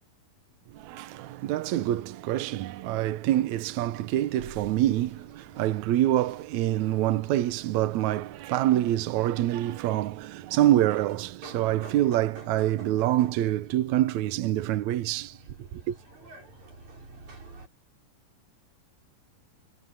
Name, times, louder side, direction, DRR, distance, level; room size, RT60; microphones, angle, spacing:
voice 1, 0.7-15.4 15.9-16.0, right 13 dB, 80° right, 1.6 m, -26 dB
sound 1, 4.0-17.7, right 3 dB, 45° right, 8.5 m, -51 dB
omnidirectional pair, 4.5 m